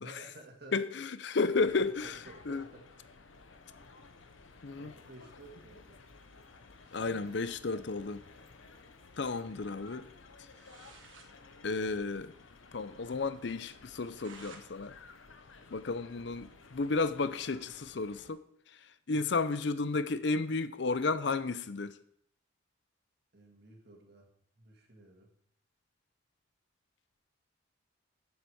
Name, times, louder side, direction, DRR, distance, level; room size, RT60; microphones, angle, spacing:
voice 1, 0.0-0.8 1.5-3.2 4.7-6.0 6.8-8.1 9.4-9.9 16.1-16.2 16.5-16.6 23.3-24.3 24.6-25.3, right 2 dB, 55° right, 1.9 m, -54 dB
voice 2, 0.7-2.7 4.6-4.9 6.9-8.2 9.2-10.1 11.6-12.3 12.7-15.0 15.7-22.0, left 3 dB, 60° left, 0.6 m, -33 dB
sound 1, 1.6-18.3, left 4 dB, 75° left, 0.9 m, -55 dB
sound 2, 10.5-11.3 11.7-11.8 12.0-12.1 12.5-12.6 13.0-13.1 13.7-14.7 15.0-16.4, right 4 dB, 75° right, 1.5 m, -56 dB
7.8 x 7.3 x 6.3 m
head